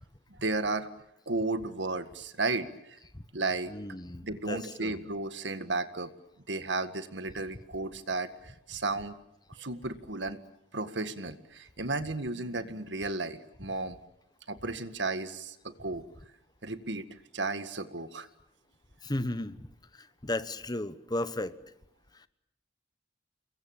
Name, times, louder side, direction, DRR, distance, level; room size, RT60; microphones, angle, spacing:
voice 1, 0.3-0.9 1.3-3.0 3.3-3.7 4.2-6.1 6.5-9.2 9.5-10.4 10.7-14.0 14.5-16.0 16.6-17.1 17.3-18.3, right 3 dB, 70° right, 11 dB, 1.8 m, -33 dB
voice 2, 3.7-5.0 19.0-19.6 20.0-21.5, left 1 dB, 20° left, 13 dB, 1.1 m, -34 dB
29.0 x 22.5 x 8.9 m, 0.80 s
head